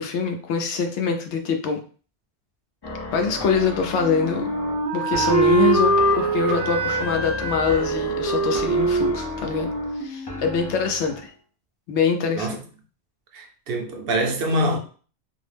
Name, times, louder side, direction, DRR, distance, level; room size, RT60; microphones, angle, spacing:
voice 1, 0.0-1.8 3.1-4.4 4.9-9.7 10.0-11.3 11.9-12.5, left 5 dB, 85° left, 0.9 m, -24 dB
sound 1, 2.8-11.3, left 1 dB, 35° left, 0.4 m, -35 dB
Wind instrument woodwind instrument, 4.0-10.8, right 2 dB, 30° right, 0.4 m, -23 dB
voice 2, 13.3-14.8, right 1 dB, 65° right, 0.7 m, -24 dB
2.5 x 2.0 x 3.2 m
omnidirectional pair, 1.1 m